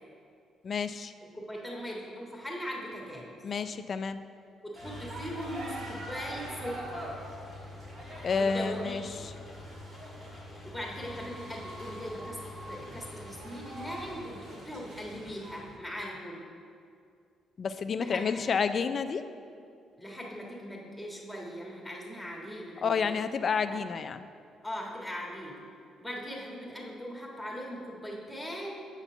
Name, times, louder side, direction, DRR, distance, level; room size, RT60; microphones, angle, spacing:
voice 1, 0.6-1.1 3.4-4.2 8.2-9.3 17.6-19.2 22.8-24.3, left 5 dB, 40° left, 10 dB, 0.3 m, -30 dB
voice 2, 1.3-3.3 4.6-7.1 8.3-9.2 10.6-12.4 12.7-16.5 18.0-18.4 20.0-23.2 23.7-23.8 24.6-25.6 26.0-28.8, equal, 5° right, -3 dB, 1.6 m, -40 dB
sound 1, 4.7-15.8, right 1 dB, 65° right, 1.9 m, -44 dB
Engine, 4.8-14.2, left 2 dB, 10° left, 1.0 m, -47 dB
8.1 x 4.3 x 6.8 m, 2.4 s
cardioid pair, 120°, 0 cm